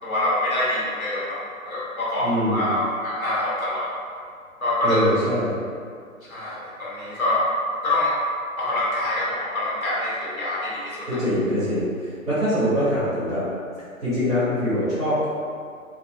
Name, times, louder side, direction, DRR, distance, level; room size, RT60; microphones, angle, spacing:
voice 1, 0.0-3.9 4.6-5.0 6.3-7.4 7.8-8.1 8.6-11.2, left 1 dB, 75° left, -8 dB, 1.1 m, -25 dB
voice 2, 2.2-2.6 4.8-5.5 11.1-13.4 14.0-15.3, equal, ahead, -18 dB, 1.0 m, -23 dB
2.4 x 2.3 x 2.3 m, 2.2 s
figure-of-eight pair, 140°, 43 cm